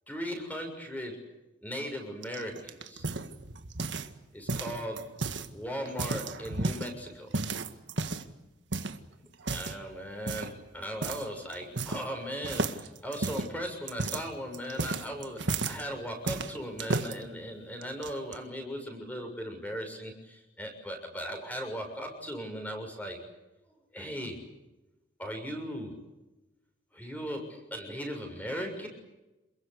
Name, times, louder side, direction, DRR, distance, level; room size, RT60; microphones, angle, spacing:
voice 1, 0.1-1.2 1.6-3.0 4.3-5.1 5.5-7.3 9.4-23.2 23.9-24.4 25.2-26.0 26.9-28.9, equal, 10° left, 4 dB, 6.8 m, -38 dB
sound 1, 2.2-4.2 4.5-5.5 5.9-6.9 7.3-8.3 8.7-9.0 9.4-9.8 10.3-10.6 11.0-11.3 11.5-12.2 12.4-15.8 16.3-17.1 17.8-18.4, right 3 dB, 65° right, 1.8 m, -33 dB
28.0 x 22.5 x 8.3 m, 1.0 s
head